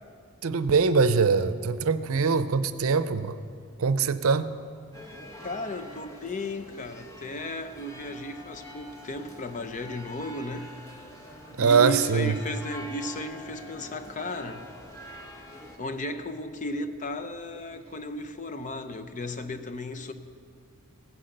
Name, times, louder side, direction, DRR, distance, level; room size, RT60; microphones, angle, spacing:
voice 1, 0.4-3.3 3.8-4.5 11.6-12.4, right 5 dB, 80° right, 0.6 m, -23 dB
sound 1, 4.9-15.8, equal, 15° left, 1.5 m, -45 dB
voice 2, 5.4-10.7 11.6-14.7 15.8-20.1, left 1 dB, 35° left, 0.7 m, -35 dB
15.5 x 10.0 x 6.6 m
head